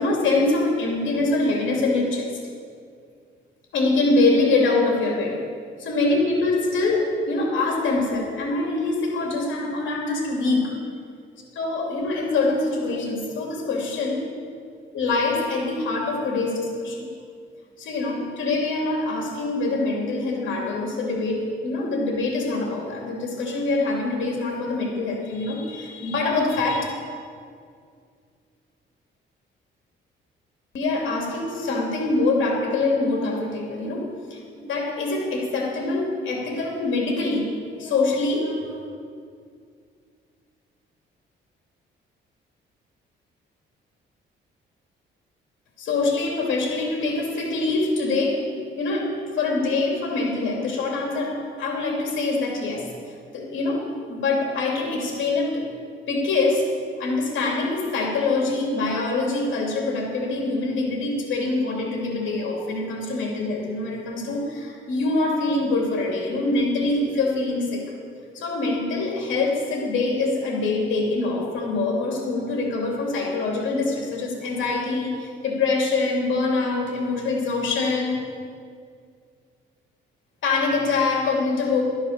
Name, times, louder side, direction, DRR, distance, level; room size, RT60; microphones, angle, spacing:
voice 1, 0.0-2.3 3.7-5.4 5.8-10.7 11.6-14.3 14.9-17.1 17.8-26.8 30.7-34.4 34.7-37.5 37.8-38.8 45.8-48.4 48.8-52.9 53.3-55.7 56.1-56.7 57.0-67.8 68.3-78.2 80.4-81.8, left 3 dB, 75° left, -1 dB, 2.8 m, -24 dB
12.0 x 9.4 x 6.6 m, 2.2 s
cardioid pair, 90°, 20 cm